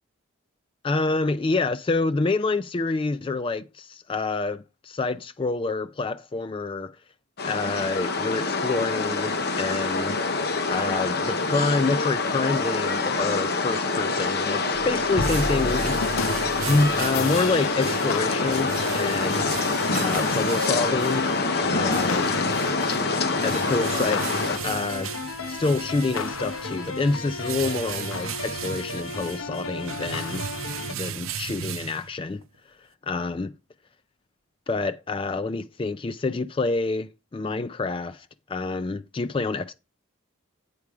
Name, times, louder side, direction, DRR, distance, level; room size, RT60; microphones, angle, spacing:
voice 1, 0.8-7.0 7.4-10.2 10.7-19.5 19.9-21.2 21.7-22.3 23.4-25.1 25.5-30.5 30.9-32.4 33.0-33.5 34.7-39.7, left 3 dB, 25° left, 0.3 m, -27 dB
sound 1, 7.4-24.6, left 3 dB, 50° left, 0.9 m, -26 dB
sound 2, 14.6-32.5, right 8 dB, 75° right, 0.6 m, -37 dB
sound 3, 14.7-30.9, left 4 dB, 75° left, 0.7 m, -33 dB
8.5 x 4.7 x 4.8 m
head